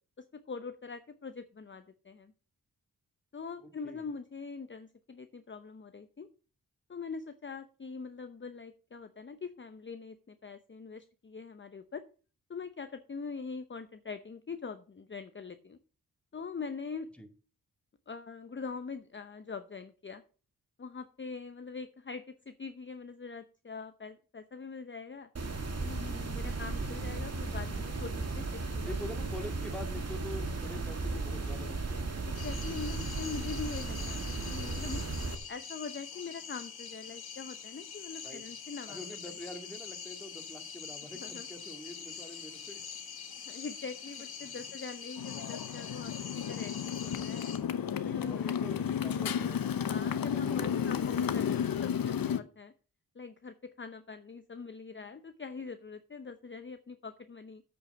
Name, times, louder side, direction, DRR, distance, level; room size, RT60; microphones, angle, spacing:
voice 1, 0.2-2.3 3.3-6.3 6.9-12.0 12.5-15.8 16.3-17.1 18.1-20.2 20.8-25.3 25.8-29.0 32.3-35.0 35.5-39.0 41.2-41.5 43.5-47.5 48.1-48.4 49.7-52.7 53.1-57.6, left 5 dB, 30° left, 9 dB, 0.8 m, -43 dB
sound 1, 25.4-35.4, right 3 dB, 45° right, 1.8 m, -35 dB
voice 2, 28.8-32.1 38.2-38.4 38.9-42.8 44.4-44.6 48.0-51.3, left 1 dB, 5° left, 4 dB, 2.3 m, -45 dB
sound 2, 32.3-47.6, left 7 dB, 85° left, 1.5 m, -44 dB
Motorcycle, 45.2-52.4, left 8 dB, 70° left, 0.8 m, -32 dB
8.3 x 6.2 x 6.6 m, 0.37 s
cardioid pair, 60°, 36 cm